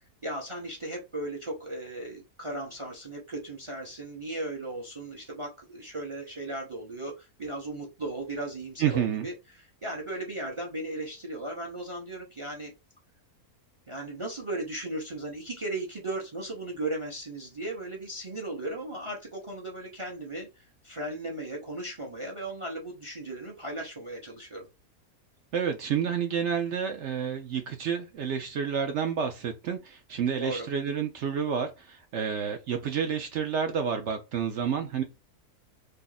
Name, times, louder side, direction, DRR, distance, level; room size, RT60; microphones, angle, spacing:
voice 1, 0.2-9.3 9.8-12.7 13.9-24.7 30.4-30.7, right 2 dB, 30° right, 0.6 m, -36 dB
voice 2, 8.8-9.3 25.5-35.0, right 7 dB, 65° right, 0.7 m, -29 dB
2.7 x 2.5 x 3.9 m
omnidirectional pair, 1.6 m